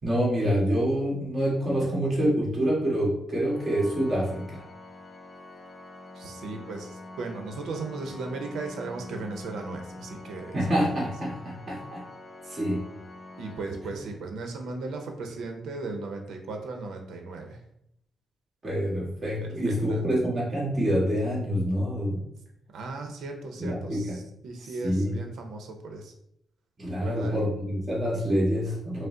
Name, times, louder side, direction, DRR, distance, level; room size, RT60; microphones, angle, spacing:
voice 1, 0.0-4.6 10.5-12.0 12.4-12.8 18.6-22.2 23.6-24.2 24.8-25.1 26.8-29.1, equal, 25° right, -5 dB, 1.5 m, -26 dB
Organ, 3.5-14.5, left 2 dB, 40° left, 0.5 m, -45 dB
voice 2, 6.1-10.9 13.4-17.6 19.4-20.0 22.7-26.1 27.0-27.4, right 3 dB, 80° right, 4 dB, 0.7 m, -37 dB
5.2 x 2.0 x 3.7 m, 0.74 s
cardioid pair, 140°, 0 cm